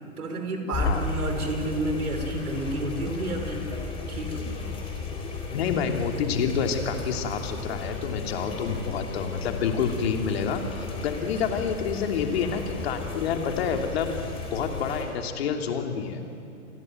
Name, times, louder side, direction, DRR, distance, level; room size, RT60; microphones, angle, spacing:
voice 1, 0.2-3.7 4.1-4.8 11.2-11.3, right 1 dB, 85° right, 4 dB, 5.5 m, -31 dB
sound 1, 0.7-15.1, left 3 dB, 10° left, 4.0 m, -34 dB
voice 2, 5.5-14.2 14.5-16.2, left 6 dB, 45° left, 4 dB, 3.0 m, -28 dB
29.0 x 19.5 x 9.2 m, 2.8 s
hypercardioid pair, 150°, 43 cm